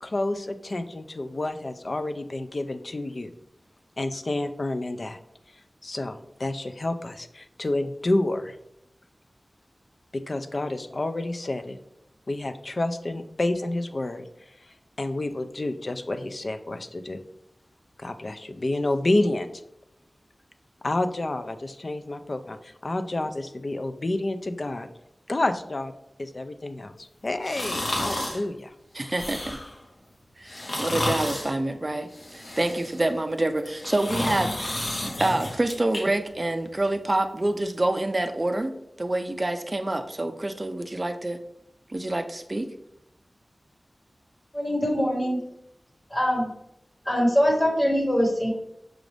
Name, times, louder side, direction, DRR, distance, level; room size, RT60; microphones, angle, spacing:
voice 1, 0.0-3.3 4.0-5.2 5.8-8.6 10.1-11.8 12.3-14.2 14.7-17.2 18.0-19.5 20.8-24.9 25.3-25.9 26.2-28.7, left 2 dB, 50° left, 9 dB, 0.4 m, -29 dB
sound 1, 27.4-28.4 29.0-29.8 30.5-31.5 32.1-33.0 33.6-36.0 36.4-36.5, left 1 dB, 70° left, 1.1 m, -31 dB
voice 2, 28.9-29.6 30.4-30.5 30.8-34.8 35.2-38.7 39.0-41.4 41.9-42.7, right 1 dB, 35° right, 8 dB, 0.4 m, -27 dB
voice 3, 44.5-45.4 46.1-46.5 47.0-48.5, equal, 30° left, -1 dB, 1.3 m, -23 dB
6.0 x 2.5 x 3.3 m, 0.82 s
wide cardioid pair, 75°, 0 cm